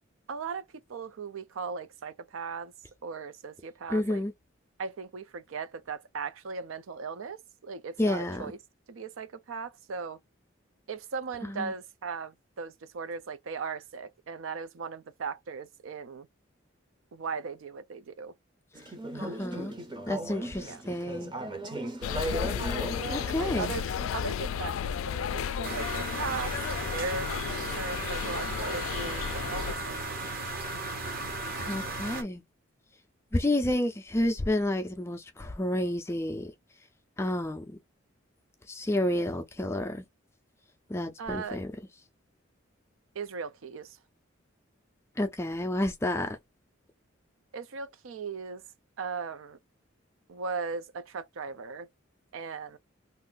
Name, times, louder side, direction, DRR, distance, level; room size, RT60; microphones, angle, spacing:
voice 1, 0.3-2.7 3.0-4.2 4.8-8.6 8.9-10.2 10.9-16.3 17.1-18.3 20.6-20.8 23.4-23.9 24.1-27.3 27.7-30.3 41.2-41.6 43.1-44.0 47.5-48.6 49.0-49.6 50.3-51.9 52.3-52.8, right 5 dB, 80° right, 0.5 m, -38 dB
voice 2, 3.9-4.3 8.0-8.5 11.4-11.7 19.1-19.7 20.1-21.3 23.1-23.7 31.6-32.4 33.3-36.5 37.2-37.6 38.7-40.0 40.9-41.7 45.2-46.4, left 1 dB, 15° left, 0.3 m, -30 dB
Conversation / Chatter, 18.7-24.1, right 1 dB, 25° right, 0.6 m, -37 dB
sound 1, 22.0-29.7, left 8 dB, 90° left, 0.3 m, -33 dB
sound 2, 25.6-32.2, right 2 dB, 45° right, 0.8 m, -35 dB
2.5 x 2.4 x 3.7 m
head